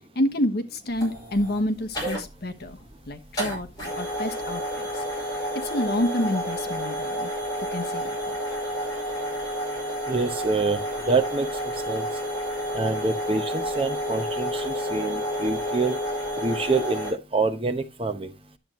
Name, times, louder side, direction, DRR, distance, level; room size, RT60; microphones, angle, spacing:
voice 1, 0.1-2.8 3.1-3.7 3.9-7.3 7.7-8.4, left 1 dB, 50° left, 1.1 m, -28 dB
sound 1, 0.9-17.1, equal, 20° left, 5.0 m, -30 dB
voice 2, 10.0-12.2 12.7-16.0 16.4-18.4, right 3 dB, 30° right, 0.9 m, -27 dB
10.5 x 7.7 x 3.0 m
head